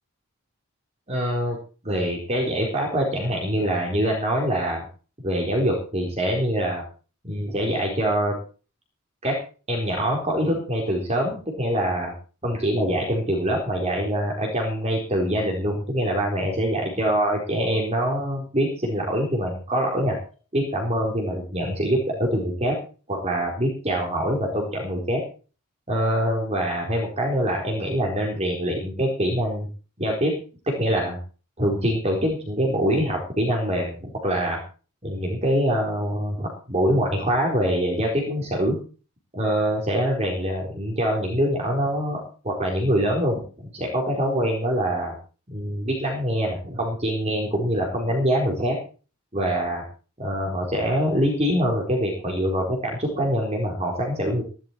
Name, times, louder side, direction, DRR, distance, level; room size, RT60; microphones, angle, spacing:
voice 1, 1.1-1.6 1.8-4.9 5.2-6.8 7.2-8.4 9.2-9.4 9.7-12.1 12.4-20.2 20.5-22.8 23.1-25.2 25.9-29.7 30.0-30.3 30.7-31.2 31.6-34.6 35.0-38.8 39.3-45.1 45.5-48.8 49.3-49.8 50.2-54.4, equal, 30° right, 0 dB, 4.2 m, -24 dB
16.5 x 11.5 x 4.6 m, 0.37 s
head